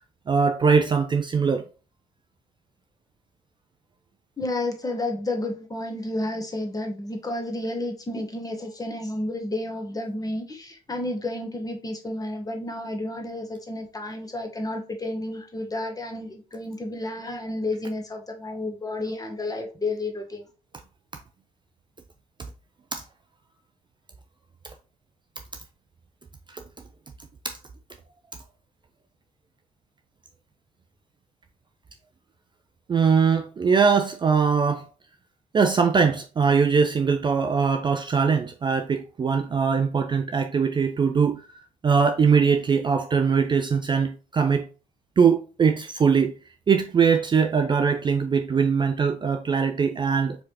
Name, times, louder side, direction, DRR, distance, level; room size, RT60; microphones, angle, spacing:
voice 1, 0.3-1.6 22.9-23.0 26.5-26.6 27.4-27.6 32.9-34.9 35.5-41.4 41.8-44.7 45.2-46.3 46.7-50.4, right 6 dB, 25° right, 0.4 m, -21 dB
voice 2, 4.4-20.4, left 2 dB, 20° left, 1.1 m, -31 dB
4.6 x 3.3 x 2.8 m
figure-of-eight pair, 50°, 18 cm